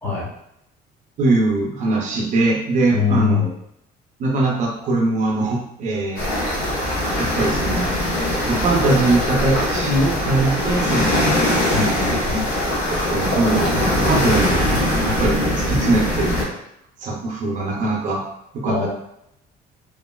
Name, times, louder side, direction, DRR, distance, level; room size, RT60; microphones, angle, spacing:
voice 1, 1.2-3.5 4.2-6.3 7.2-7.9 8.5-11.4 12.9-14.7 15.0-16.4 17.0-18.2 18.5-18.9, right 2 dB, 45° right, -1 dB, 0.5 m, -21 dB
voice 2, 2.9-3.4 11.7-12.5 18.7-18.9, left 6 dB, 10° left, -6 dB, 0.7 m, -22 dB
sound 1, 6.2-16.4, left 1 dB, 65° left, 1.2 m, -21 dB
3.0 x 2.3 x 2.2 m, 0.78 s
cardioid pair, 160°, 17 cm